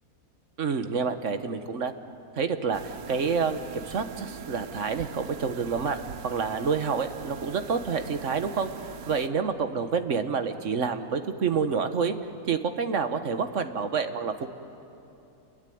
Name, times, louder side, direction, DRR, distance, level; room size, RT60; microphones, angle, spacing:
voice 1, 0.6-1.9 2.4-8.7 9.1-12.1 12.5-14.5, right 5 dB, 55° right, 8 dB, 1.5 m, -28 dB
sound 1, 2.7-9.3, right 8 dB, 75° right, 1.4 m, -42 dB
29.5 x 21.5 x 9.4 m, 2.9 s
omnidirectional pair, 1.6 m